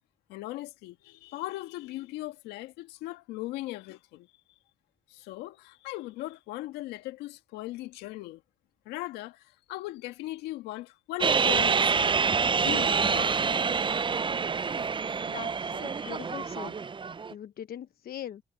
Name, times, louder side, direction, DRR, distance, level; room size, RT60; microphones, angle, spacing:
voice 1, 0.3-4.3 5.1-8.4 8.9-12.2 12.6-13.6 16.0-16.3, left 17 dB, 85° left, 1.8 m, -39 dB
sound 1, 11.2-17.3, right 5 dB, 30° right, 0.5 m, -27 dB
voice 2, 15.3-16.7 17.3-18.4, left 10 dB, 65° left, 1.0 m, -41 dB
hypercardioid pair, 50°, 16 cm